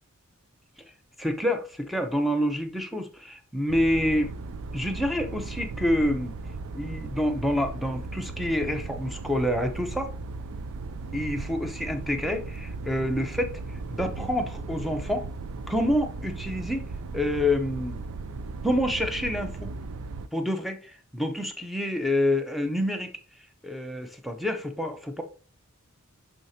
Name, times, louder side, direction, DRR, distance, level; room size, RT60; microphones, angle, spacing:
voice 1, 1.2-4.3 4.7-6.3 6.7-10.1 11.1-13.6 13.9-15.3 15.7-16.8 17.1-18.0 18.6-19.7 20.3-23.1 23.6-25.2, left 1 dB, ahead, 6 dB, 0.8 m, -27 dB
sound 1, 3.7-20.3, right 3 dB, 65° right, 0.4 m, -37 dB
6.2 x 5.8 x 2.8 m, 0.36 s
head